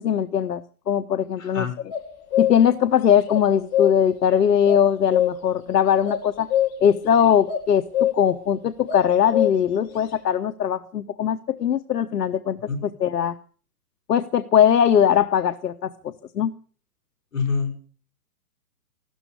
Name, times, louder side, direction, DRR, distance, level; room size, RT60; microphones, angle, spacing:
voice 1, 0.0-1.7 2.4-6.5 6.8-12.6 12.8-13.4 14.1-15.9 16.3-16.5, left 9 dB, 85° left, 9 dB, 1.1 m, -20 dB
voice 2, 1.4-1.7 12.7-12.8 17.3-17.8, left 5 dB, 55° left, 4 dB, 5.7 m, -26 dB
sound 1, 1.9-2.8 3.3-4.2 4.7-5.6 6.0-7.1 7.5-7.7 7.9-8.4 8.9-9.8, left 11 dB, 15° left, 1.9 m, -24 dB
15.5 x 13.0 x 6.8 m, 0.42 s
hypercardioid pair, 175°, 47 cm